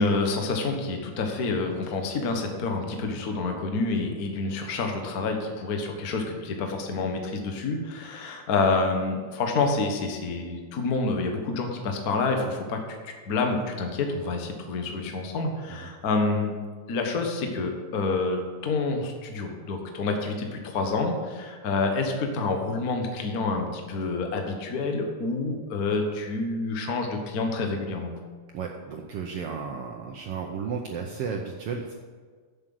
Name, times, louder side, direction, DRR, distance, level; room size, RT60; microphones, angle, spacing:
voice 1, 0.0-16.5 16.9-28.1, left 3 dB, 50° left, 4 dB, 1.1 m, -28 dB
voice 2, 28.5-31.9, right 6 dB, 75° right, 2 dB, 1.3 m, -33 dB
8.0 x 7.4 x 7.8 m, 1.5 s
omnidirectional pair, 3.5 m